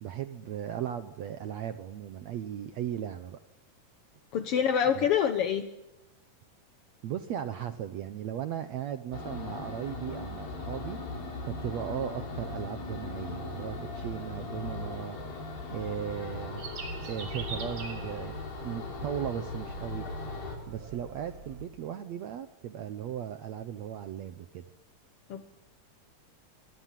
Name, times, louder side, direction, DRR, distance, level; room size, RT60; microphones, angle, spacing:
voice 1, 0.0-3.4 5.0-5.1 7.0-11.2 11.5-15.2 15.7-16.7 17.1-18.3 18.6-20.1 20.7-24.6, right 10 dB, 65° right, 9 dB, 1.9 m, -37 dB
voice 2, 4.3-5.7 25.3-25.4, left 8 dB, 60° left, 8 dB, 1.6 m, -26 dB
sound 1, 9.1-20.6, left 3 dB, 90° left, 6.2 m, -39 dB
sound 2, 16.6-21.6, right 4 dB, 45° right, 3.5 m, -43 dB
25.0 x 24.5 x 7.6 m, 0.94 s
omnidirectional pair, 3.9 m